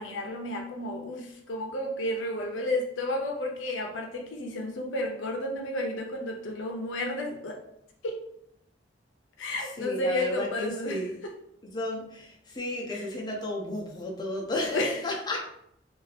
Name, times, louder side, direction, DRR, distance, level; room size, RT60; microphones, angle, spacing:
voice 1, 0.0-7.6 8.0-8.3 9.4-11.3 12.9-13.0 14.7-15.0, left 1 dB, 85° left, 0.5 m, -32 dB
voice 2, 9.8-11.1 11.6-15.4, left 1 dB, 25° left, 0.5 m, -33 dB
2.6 x 2.3 x 3.2 m
head